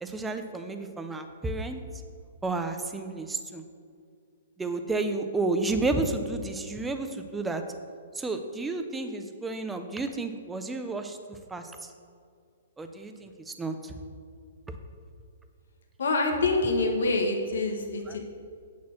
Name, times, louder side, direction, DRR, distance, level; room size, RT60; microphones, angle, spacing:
voice 1, 0.0-1.8 2.4-3.6 4.6-7.6 8.2-11.9 12.8-13.9 14.7-14.8 18.1-18.2, right 3 dB, 5° right, 7 dB, 0.3 m, -31 dB
voice 2, 16.0-18.2, left 3 dB, 70° left, 3 dB, 1.5 m, -26 dB
8.5 x 4.3 x 7.1 m, 2.2 s
hypercardioid pair, 180°, 0 cm